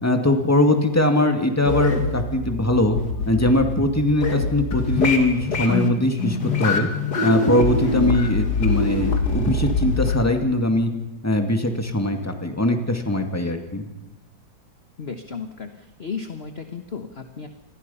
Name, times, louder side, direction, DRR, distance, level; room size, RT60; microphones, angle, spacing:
voice 1, 0.0-3.0 3.3-6.9 7.2-10.9 11.2-13.9, left 1 dB, 10° left, 5 dB, 2.1 m, -21 dB
sound 1, 1.7-10.2, left 3 dB, 60° left, 3.1 m, -24 dB
voice 2, 7.8-8.2 15.0-17.5, left 5 dB, 35° left, 7 dB, 1.3 m, -32 dB
28.0 x 21.0 x 5.7 m, 1.0 s
omnidirectional pair, 2.0 m